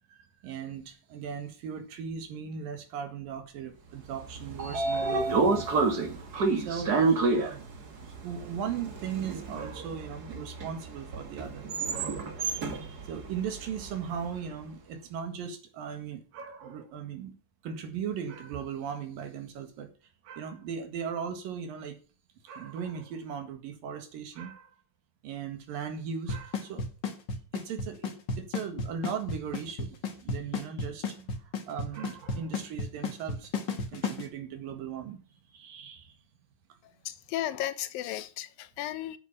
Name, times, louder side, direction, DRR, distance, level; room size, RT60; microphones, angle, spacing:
voice 1, 0.1-5.8 6.6-7.6 8.0-17.3 17.6-19.9 20.2-22.0 22.4-24.7 25.2-26.8 27.5-33.5 33.9-35.2 35.5-36.2, right 7 dB, 75° right, 3.4 m, -38 dB
Train / Sliding door, 4.1-14.3, right 4 dB, 40° right, 1.4 m, -30 dB
Drum kit / Snare drum / Bass drum, 26.3-34.2, left 4 dB, 40° left, 1.7 m, -32 dB
voice 2, 37.1-39.2, left 13 dB, 80° left, 2.6 m, -34 dB
9.6 x 8.8 x 7.1 m
omnidirectional pair, 4.1 m